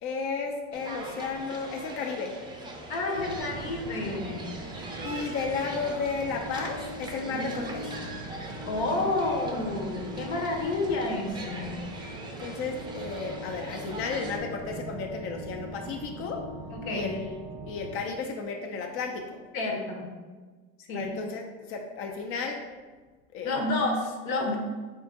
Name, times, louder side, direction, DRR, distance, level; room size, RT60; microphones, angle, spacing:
voice 1, 0.0-2.4 5.0-7.9 12.4-16.5 16.9-17.4 17.7-19.4 20.9-22.7 23.3-23.6, left 4 dB, 40° left, 2 dB, 0.4 m, -33 dB
sound 1, 0.7-14.4, right 2 dB, 15° right, 0.5 m, -41 dB
voice 2, 2.9-4.6 7.3-7.5 8.7-11.8 16.7-17.1 19.5-20.1 20.9-21.1 23.4-24.6, left 2 dB, 75° left, 2 dB, 0.9 m, -30 dB
sound 2, 3.1-18.0, right 1 dB, 70° right, 0.5 m, -41 dB
3.7 x 2.6 x 3.5 m, 1.4 s
supercardioid pair, 115°, 33 cm